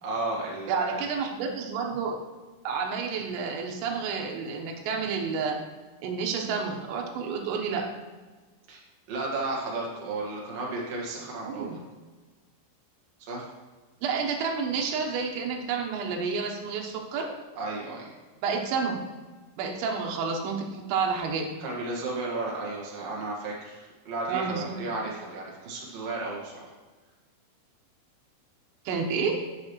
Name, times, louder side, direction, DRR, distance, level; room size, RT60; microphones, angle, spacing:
voice 1, 0.0-1.1 8.7-8.8 9.1-11.7 13.2-13.5 17.6-18.1 21.6-26.7, right 2 dB, 60° right, -3 dB, 1.8 m, -33 dB
voice 2, 0.7-2.2 2.7-5.6 6.0-7.9 11.4-11.8 14.0-17.4 18.4-19.0 19.6-21.5 24.3-24.8 28.9-29.5, right 5 dB, 80° right, 1 dB, 3.8 m, -30 dB
11.5 x 6.7 x 3.1 m, 1.3 s
omnidirectional pair, 5.9 m